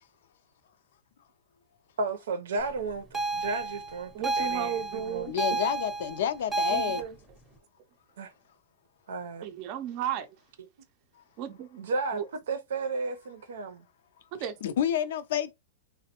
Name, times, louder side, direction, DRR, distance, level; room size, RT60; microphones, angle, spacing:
voice 1, 2.0-5.6 8.2-8.3 9.1-9.5 11.8-12.2 12.5-13.9, right 3 dB, 80° right, 0.6 m, -33 dB
sound 1, 3.1-7.0, right 3 dB, ahead, 0.7 m, -31 dB
voice 2, 4.1-5.3 6.7-7.1 9.4-10.3 11.4-11.7 12.1-12.3 14.4-14.5, right 9 dB, 35° right, 0.5 m, -34 dB
voice 3, 5.3-7.0 14.6-15.5, left 9 dB, 65° left, 0.5 m, -29 dB
3.2 x 2.1 x 2.9 m
supercardioid pair, 155°, 0 cm